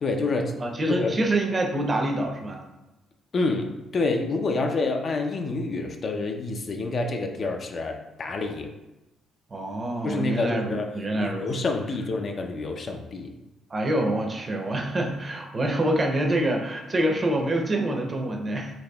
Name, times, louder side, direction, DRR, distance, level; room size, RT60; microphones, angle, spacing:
voice 1, 0.0-0.5 0.9-1.2 3.3-8.7 10.0-10.9 11.2-13.3, left 3 dB, 50° left, 4 dB, 0.4 m, -28 dB
voice 2, 0.6-2.6 9.5-11.5 13.7-18.7, right 1 dB, 30° right, 2 dB, 0.6 m, -26 dB
4.1 x 2.8 x 2.2 m, 0.98 s
cardioid pair, 90°, 0 cm